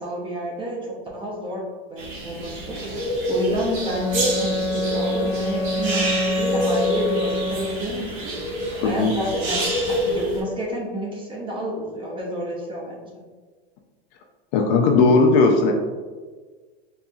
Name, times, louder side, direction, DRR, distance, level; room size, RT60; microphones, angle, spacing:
voice 1, 0.0-2.8 3.3-8.3 8.8-13.1, equal, 15° right, -2 dB, 0.6 m, -30 dB
sound 1, 2.0-10.4, equal, 55° right, 1.4 m, -27 dB
Bowed string instrument, 3.7-8.1, left 1 dB, 65° left, 1.0 m, -26 dB
voice 2, 8.8-9.1 14.5-15.7, left 3 dB, 50° left, 3 dB, 0.4 m, -17 dB
4.2 x 2.6 x 2.3 m, 1.4 s
supercardioid pair, 140°, 30 cm